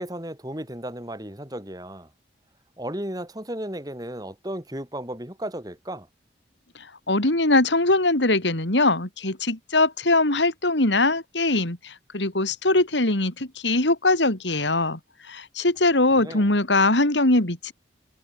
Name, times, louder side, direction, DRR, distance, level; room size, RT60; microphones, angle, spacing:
voice 1, 0.0-2.1 2.8-6.1 16.2-16.5, right 1 dB, 20° right, 4.7 m, -34 dB
voice 2, 7.1-15.0 15.3-17.7, left 2 dB, 80° left, 3.7 m, -21 dB
head